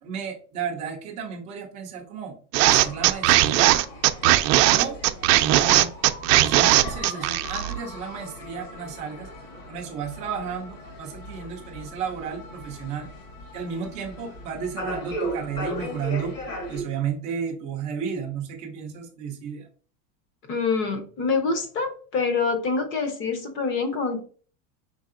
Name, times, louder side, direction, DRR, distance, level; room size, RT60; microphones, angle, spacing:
voice 1, 0.0-2.4 2.6-3.8 4.7-5.0 5.3-5.9 6.4-9.3 9.7-13.1 13.5-16.4 16.7-19.7, right 7 dB, 15° right, -1 dB, 0.3 m, -33 dB
sound 1, 2.5-7.8, right 16 dB, 85° right, 0.6 m, -18 dB
sound 2, 2.8-16.8, equal, 65° left, 1.8 m, -38 dB
voice 2, 20.5-24.2, left 4 dB, 25° left, 7 dB, 0.6 m, -26 dB
5.4 x 3.4 x 2.4 m, 0.42 s
supercardioid pair, 170°, 47 cm